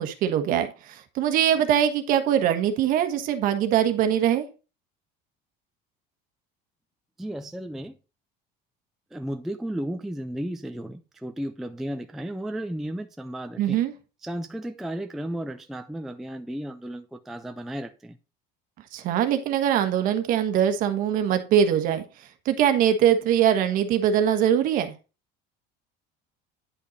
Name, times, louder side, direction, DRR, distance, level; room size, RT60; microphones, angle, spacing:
voice 1, 0.0-4.5 13.6-13.9 18.9-22.0 22.4-24.9, right 9 dB, 45° right, 1.3 m, -22 dB
voice 2, 7.2-8.0 9.1-13.8 14.2-18.2, right 1 dB, ahead, 0.3 m, -34 dB
10.0 x 5.3 x 4.1 m
cardioid pair, 170°, 19 cm